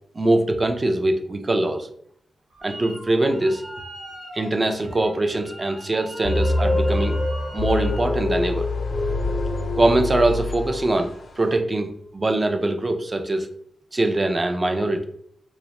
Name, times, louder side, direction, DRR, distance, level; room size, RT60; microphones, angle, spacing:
voice 1, 0.1-1.9 2.6-3.6 4.3-7.2 7.5-8.7 9.8-13.5 13.9-15.0, right 2 dB, 35° right, 6 dB, 0.4 m, -22 dB
Motor vehicle (road) / Siren, 2.5-11.4 11.8-12.3, equal, 80° right, 0.9 m, -45 dB
Wind instrument woodwind instrument, 2.6-3.0 3.3-8.1, right 1 dB, 15° right, 1.0 m, -42 dB
sound 1, 6.2-11.2, left 2 dB, 60° left, 0.4 m, -24 dB
2.4 x 2.0 x 2.8 m, 0.69 s
supercardioid pair, 40°, 0 cm